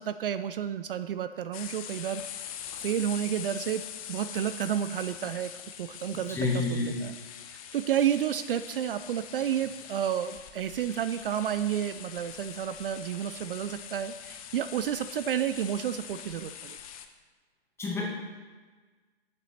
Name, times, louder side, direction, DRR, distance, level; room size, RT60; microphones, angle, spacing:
voice 1, 0.0-2.5 2.8-3.8 4.1-5.5 5.8-6.6 7.0-7.1 7.5-16.8, right 10 dB, 60° right, 12 dB, 0.4 m, -31 dB
sound 1, 1.5-17.1, left 9 dB, 35° left, 0.7 m, -43 dB
voice 2, 6.3-7.0 17.8-18.0, left 3 dB, 10° left, -3 dB, 1.6 m, -28 dB
8.7 x 7.6 x 4.3 m, 1.4 s
hypercardioid pair, 140°, 32 cm